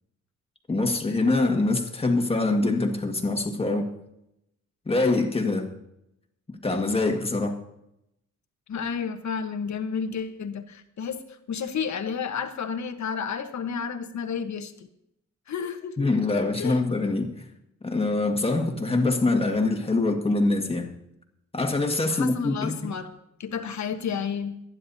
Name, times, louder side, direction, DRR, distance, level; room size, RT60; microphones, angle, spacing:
voice 1, 0.7-3.9 4.9-5.7 6.6-7.6 16.0-17.3 17.8-20.9 21.5-22.9, left 2 dB, 20° left, 3 dB, 1.8 m, -24 dB
voice 2, 8.7-14.9 15.5-16.1 16.6-16.8 22.1-23.1 23.4-24.5, left 6 dB, 70° left, 8 dB, 1.3 m, -31 dB
24.5 x 10.0 x 2.8 m, 0.80 s
wide cardioid pair, 135°, 30 cm